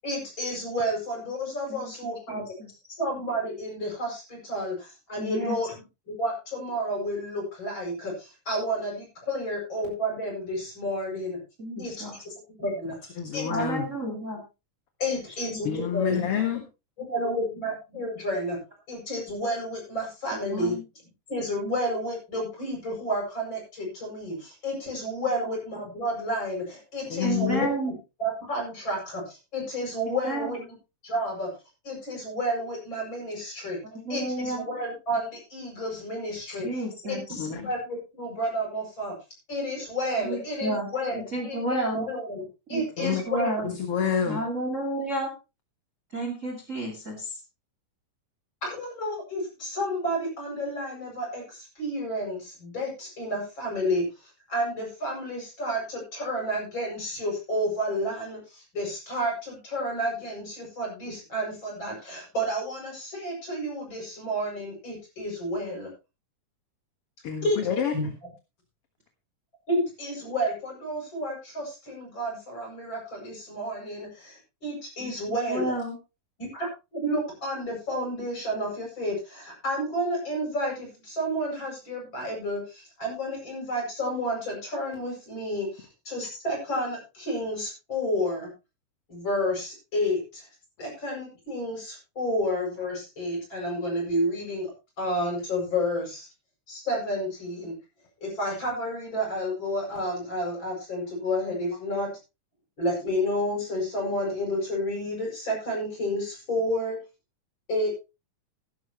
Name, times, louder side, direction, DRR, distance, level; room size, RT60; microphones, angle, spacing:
voice 1, 0.0-2.4 3.0-5.8 6.1-11.4 11.8-11.9 12.6-13.5 14.0-14.1 15.0-16.3 17.0-18.6 18.9-20.7 21.3-27.7 28.2-30.6 31.0-31.5 31.8-33.8 34.1-36.8 37.1-39.1 39.5-43.7 48.6-65.9 67.4-67.6 67.9-68.1 69.7-75.7 76.4-76.7 76.9-88.5 89.1-90.5 90.8-94.7 95.0-96.3 96.7-97.8 98.2-102.1 102.8-107.0 107.7-107.9, equal, 35° left, -1 dB, 8.5 m, -31 dB
voice 2, 1.7-2.7 5.2-5.6 11.6-12.2 13.5-14.4 15.5-15.6 20.5-20.8 25.4-25.5 27.2-27.9 30.1-30.5 33.9-34.6 36.5-37.5 40.2-42.1 42.7-43.7 44.3-45.3 46.1-47.4 75.0-75.1 75.5-76.0, right 1 dB, 25° right, 2 dB, 2.6 m, -31 dB
voice 3, 13.2-13.9 15.6-16.6 27.1-27.7 37.4-37.6 43.0-43.2 43.6-44.4 67.2-67.9, left 8 dB, 50° left, 6 dB, 2.1 m, -28 dB
16.0 x 12.0 x 3.1 m, 0.29 s
omnidirectional pair, 3.6 m